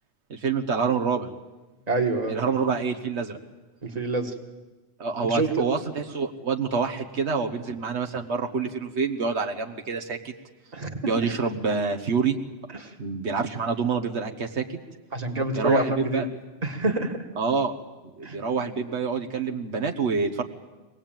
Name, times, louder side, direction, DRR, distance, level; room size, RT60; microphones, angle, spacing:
voice 1, 0.3-1.3 2.3-3.4 5.0-10.3 11.0-12.4 13.0-14.6 15.6-16.3 17.4-17.8 18.2-20.4, right 5 dB, 80° right, 4 dB, 1.6 m, -27 dB
voice 2, 1.9-2.4 3.8-4.3 5.3-5.6 10.7-11.3 12.8-12.9 15.1-16.2 16.6-17.2 18.2-18.4, right 2 dB, 35° right, 4 dB, 1.9 m, -27 dB
24.0 x 18.5 x 9.0 m, 1.2 s
omnidirectional pair, 1.1 m